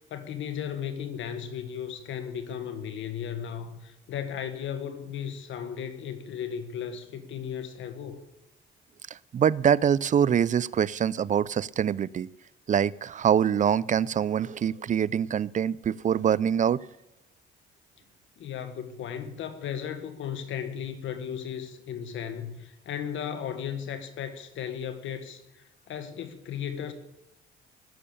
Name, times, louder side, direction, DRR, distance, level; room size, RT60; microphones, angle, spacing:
voice 1, 0.1-8.3 18.4-26.9, left 8 dB, 75° left, 1.7 m, -35 dB
voice 2, 9.3-12.3 12.7-16.8, right 8 dB, 40° right, 0.5 m, -24 dB
17.5 x 6.9 x 8.6 m
cardioid pair, 90°, 20 cm